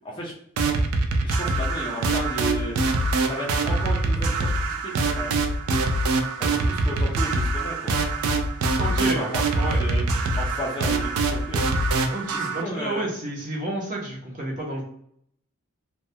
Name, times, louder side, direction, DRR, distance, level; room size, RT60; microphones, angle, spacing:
sound 1, 0.6-12.6, right 2 dB, 80° right, 0.3 m, -24 dB
voice 1, 1.2-2.8 3.2-5.4 6.4-7.9 8.8-10.0 10.4-11.6 12.3-13.0, equal, 20° left, -2 dB, 0.4 m, -34 dB
voice 2, 8.8-9.8 12.1-14.8, right 1 dB, 35° right, -3 dB, 0.6 m, -31 dB
2.2 x 2.1 x 2.6 m, 0.68 s
head